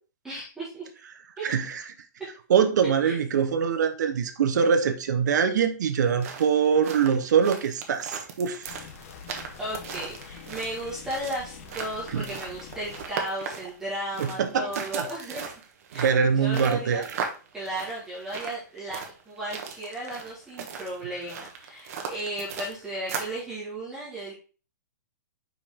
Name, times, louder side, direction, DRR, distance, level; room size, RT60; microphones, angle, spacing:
voice 1, 0.2-0.9 1.4-1.5 3.0-3.2 9.6-15.4 15.9-17.0 17.5-19.0 19.2-24.3, right 1 dB, 5° right, -9 dB, 1.6 m, -35 dB
voice 2, 1.4-1.8 2.5-8.7 12.1-12.3 14.2-15.1 15.9-17.0, right 7 dB, 65° right, 8 dB, 1.0 m, -23 dB
sound 1, 6.0-23.4, right 6 dB, 50° right, 1.2 m, -38 dB
sound 2, 8.7-13.1, left 7 dB, 45° left, 1.0 m, -45 dB
5.4 x 5.0 x 3.6 m, 0.36 s
hypercardioid pair, 170°, 10 cm